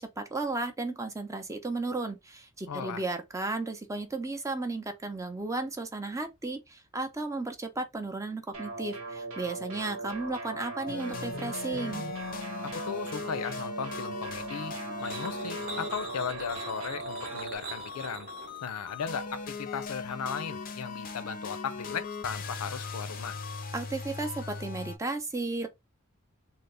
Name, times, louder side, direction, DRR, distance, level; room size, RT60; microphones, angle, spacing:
voice 1, 0.0-12.1 23.7-25.7, right 3 dB, 15° right, 0.5 m, -34 dB
voice 2, 2.7-3.0 12.9-14.7 15.0-18.3 18.6-23.4, left 7 dB, 90° left, 0.5 m, -36 dB
sound 1, 8.5-17.6, right 2 dB, 70° right, 0.8 m, -39 dB
sound 2, 10.9-25.0, left 4 dB, 40° left, 0.5 m, -39 dB
sound 3, 15.0-20.3, right 4 dB, 40° right, 0.8 m, -43 dB
3.3 x 2.0 x 3.7 m
head